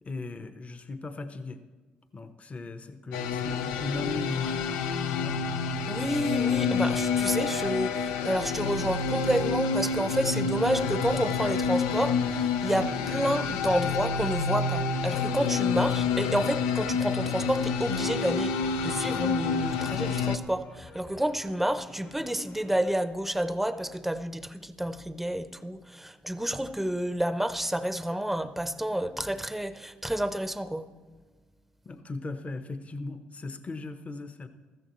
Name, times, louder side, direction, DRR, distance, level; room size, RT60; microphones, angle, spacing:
voice 1, 0.0-1.6 2.1-4.8 5.1-5.4 31.8-34.5, left 3 dB, 35° left, 0.9 m, -38 dB
sound 1, 3.1-20.4, left 5 dB, 85° left, 0.5 m, -28 dB
voice 2, 5.9-18.5 18.8-30.9, right 1 dB, 5° right, 0.7 m, -29 dB
sound 2, 7.8-22.9, left 3 dB, 65° left, 2.2 m, -51 dB
14.0 x 13.5 x 3.1 m
supercardioid pair, 55°, 4 cm